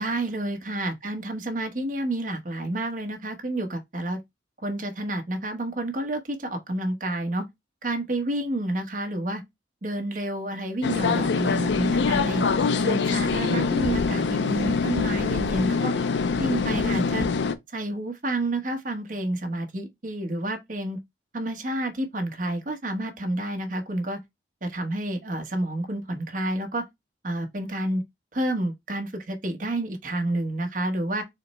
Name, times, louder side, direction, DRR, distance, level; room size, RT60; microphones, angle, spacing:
voice 1, 0.0-4.2 4.6-7.4 7.8-9.4 9.8-12.4 12.8-15.9 16.4-17.3 17.7-21.0 21.3-24.2 24.6-26.9 27.2-28.0 28.3-31.2, right 1 dB, 50° right, 1.0 m, -29 dB
sound 1, 10.8-17.6, left 4 dB, 85° left, 0.5 m, -24 dB
4.2 x 2.1 x 4.0 m
head